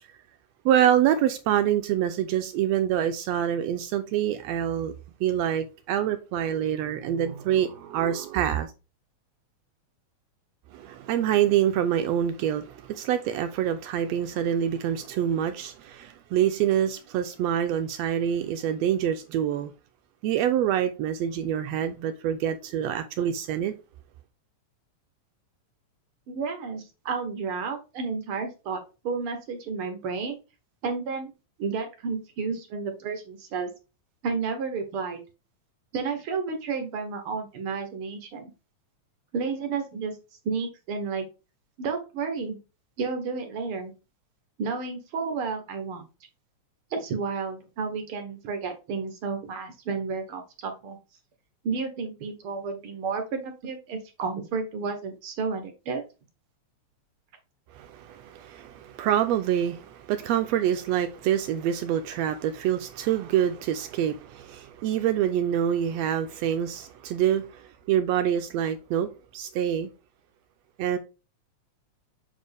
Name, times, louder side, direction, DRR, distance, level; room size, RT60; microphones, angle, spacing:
voice 1, 0.7-5.0 5.2-8.7 10.7-19.7 20.2-23.7 57.7-69.9 70.8-71.0, right 10 dB, 80° right, 1.6 m, -26 dB
voice 2, 26.3-30.4 30.8-31.3 31.6-33.7 34.2-35.2 35.9-38.5 39.3-40.2 40.4-41.3 41.8-42.6 43.0-43.9 44.6-46.0 46.9-51.0 51.6-56.0, right 5 dB, 65° right, 1.5 m, -31 dB
7.2 x 4.2 x 3.3 m
omnidirectional pair, 3.4 m